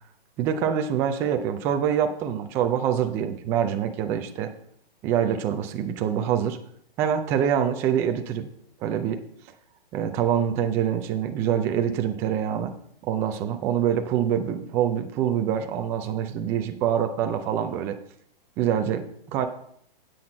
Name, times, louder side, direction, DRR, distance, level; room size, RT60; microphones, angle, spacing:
voice 1, 0.4-4.5 5.0-6.6 7.0-8.5 8.8-9.2 9.9-12.7 13.0-18.0 18.6-19.5, right 9 dB, 10° right, 6 dB, 0.3 m, -25 dB
9.4 x 7.9 x 4.4 m, 0.67 s
hypercardioid pair, 145°, 30 cm